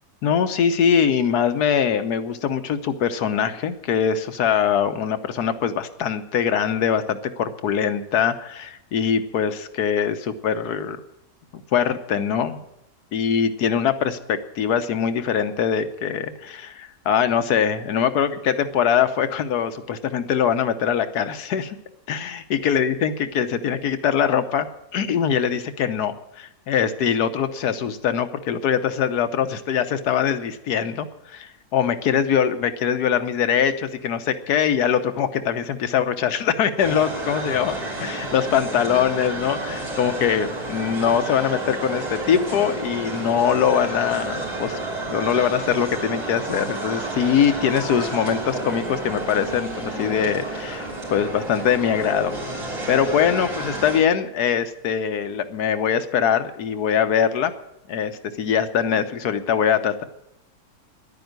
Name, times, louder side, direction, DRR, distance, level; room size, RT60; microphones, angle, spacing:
voice 1, 0.2-11.0 11.5-12.6 13.1-21.8 22.1-24.7 24.9-44.7 45.1-52.3 52.9-57.5 57.9-60.0, left 8 dB, 90° left, 10 dB, 1.5 m, -22 dB
sound 1, 36.8-54.0, right 2 dB, 80° right, 4.1 m, -30 dB
11.0 x 9.2 x 9.3 m, 0.85 s
omnidirectional pair, 1.6 m